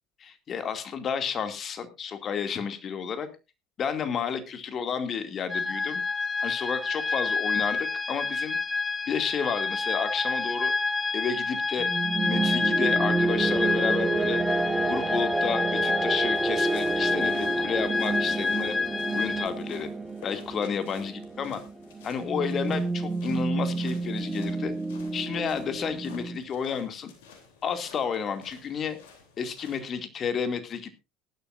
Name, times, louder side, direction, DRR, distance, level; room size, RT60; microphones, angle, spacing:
voice 1, 0.2-3.3 3.8-6.0 6.4-8.6 9.1-10.7 11.1-11.9 12.2-14.4 14.8-18.7 19.1-19.9 20.2-21.6 22.0-24.8 25.1-27.1 27.6-29.0 29.4-30.9, left 7 dB, 40° left, 8 dB, 2.5 m, -31 dB
sound 1, 5.5-19.5, left 4 dB, 20° left, 1.0 m, -28 dB
sound 2, 11.8-26.4, right 3 dB, 15° right, 1.8 m, -29 dB
sound 3, 16.3-29.8, left 6 dB, 70° left, 3.4 m, -52 dB
18.0 x 12.0 x 2.6 m, 0.27 s
hypercardioid pair, 70°, 0 cm